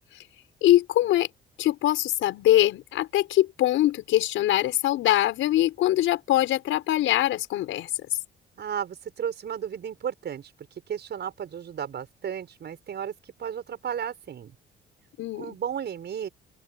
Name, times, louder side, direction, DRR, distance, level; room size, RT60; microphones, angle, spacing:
voice 1, 0.6-1.3 1.6-7.9 15.2-15.6, left 14 dB, 85° left, 5.6 m, -23 dB
voice 2, 8.6-14.5 15.4-16.3, right 8 dB, 60° right, 6.3 m, -34 dB
open air
cardioid pair, 90°, 20 cm